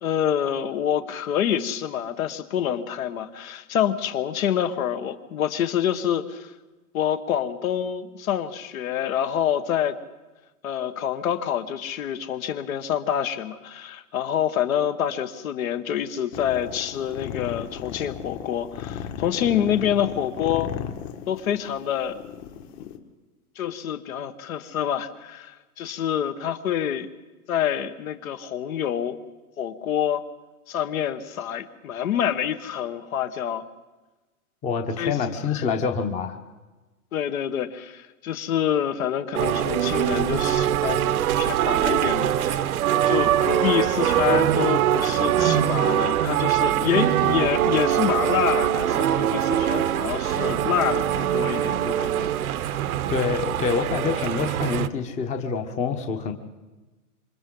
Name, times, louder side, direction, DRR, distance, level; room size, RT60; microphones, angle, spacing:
voice 1, 0.0-6.5 6.9-10.0 10.6-20.7 21.3-22.2 22.8-22.9 23.5-27.1 27.5-29.2 29.6-30.2 30.7-33.6 35.0-35.2 35.5-35.7 37.1-42.8 43.1-52.3 52.6-52.8, left 9 dB, 65° left, 10 dB, 1.5 m, -27 dB
sound 1, 16.3-23.0, left 9 dB, 45° left, 1.8 m, -35 dB
voice 2, 34.6-36.4 53.1-56.3, left 5 dB, 15° left, 7 dB, 1.0 m, -26 dB
sound 2, 39.3-54.9, right 11 dB, 70° right, 1.0 m, -23 dB
27.5 x 24.5 x 3.8 m, 1.2 s
hypercardioid pair, 150°, 45 cm